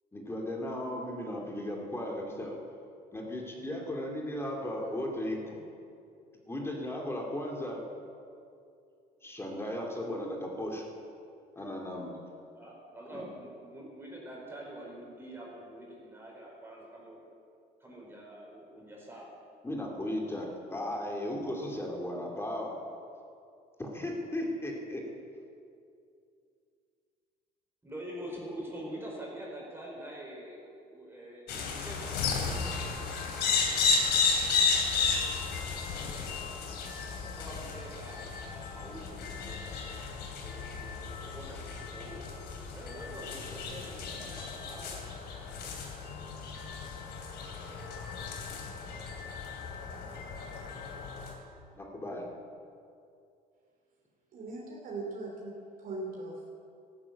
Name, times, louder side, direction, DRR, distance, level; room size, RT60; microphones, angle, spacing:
voice 1, 0.1-2.6 3.1-5.6 6.5-7.8 9.2-10.9 11.6-12.2 13.1-13.2 19.6-22.9 23.8-25.1 51.7-52.4, left 1 dB, 15° left, 0 dB, 2.5 m, -36 dB
voice 2, 12.5-17.3 17.8-19.3 27.8-33.1 36.1-36.4 37.1-39.8 40.4-42.3 42.7-44.9, right 1 dB, 15° right, -3 dB, 4.7 m, -45 dB
sound 1, 31.5-51.3, left 5 dB, 75° left, 2.9 m, -33 dB
voice 3, 54.3-56.5, right 2 dB, 55° right, -1 dB, 3.1 m, -40 dB
13.5 x 12.5 x 8.4 m, 2.5 s
cardioid pair, 110°, 17 cm